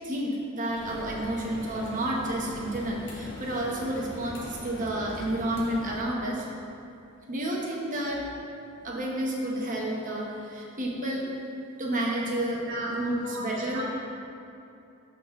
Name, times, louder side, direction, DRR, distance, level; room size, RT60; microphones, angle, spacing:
voice 1, 0.0-6.5 7.3-8.2 8.8-11.3 11.8-13.8, right 1 dB, 40° right, -3 dB, 1.0 m, -30 dB
sound 1, 0.7-6.0, equal, 65° left, 1.1 m, -41 dB
voice 2, 12.7-14.0, right 1 dB, 60° right, -5 dB, 1.5 m, -36 dB
12.0 x 4.1 x 3.0 m, 2.7 s
head